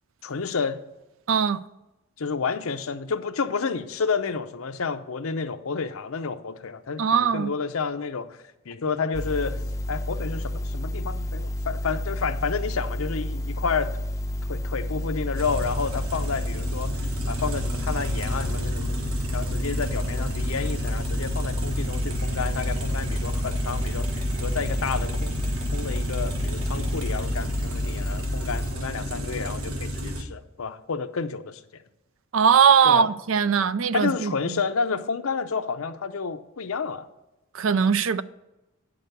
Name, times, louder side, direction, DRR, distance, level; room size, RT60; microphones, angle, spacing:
voice 1, 0.2-0.8 2.2-8.4 8.7-9.6 9.9-14.0 14.5-17.0 17.3-19.0 19.3-25.4 25.7-31.6 32.8-33.1 33.9-37.1, left 5 dB, 80° left, 0.7 m, -30 dB
voice 2, 1.3-1.6 7.0-7.5 32.3-34.6 37.5-38.2, right 7 dB, 65° right, 0.4 m, -20 dB
sound 1, 9.1-28.7, left 1 dB, 15° left, 0.5 m, -30 dB
sound 2, 15.4-30.2, equal, 90° right, 1.3 m, -31 dB
9.2 x 6.0 x 6.7 m
head